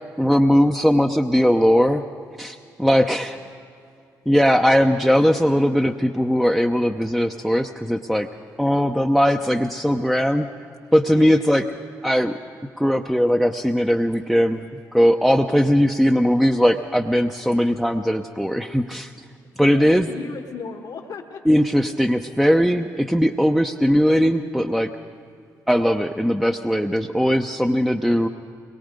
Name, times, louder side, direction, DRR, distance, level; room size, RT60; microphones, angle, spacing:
voice 1, 0.2-2.0 2.4-3.4 4.3-8.3 8.6-10.5 10.9-11.6 12.0-12.3 12.8-14.6 14.9-19.1 19.6-20.1 21.5-24.9 25.7-28.3, equal, ahead, 4 dB, 0.8 m, -19 dB
voice 2, 19.7-21.4, left 5 dB, 65° left, 3 dB, 1.2 m, -36 dB
23.0 x 22.0 x 5.2 m, 2.4 s
supercardioid pair, 55°, 8 cm